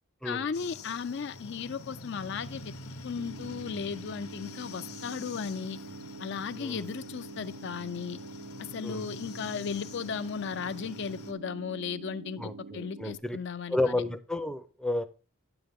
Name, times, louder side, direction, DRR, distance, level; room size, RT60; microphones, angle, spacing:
voice 1, 0.2-2.7 3.0-5.8 6.2-8.2 8.6-14.0, left 6 dB, 55° left, 0.4 m, -36 dB
sound 1, 0.5-11.3, left 3 dB, 90° left, 0.9 m, -46 dB
sound 2, 3.2-13.2, right 4 dB, 75° right, 0.5 m, -46 dB
voice 2, 12.4-13.4 13.7-15.0, left 2 dB, 5° left, 0.5 m, -31 dB
9.6 x 7.8 x 3.5 m
head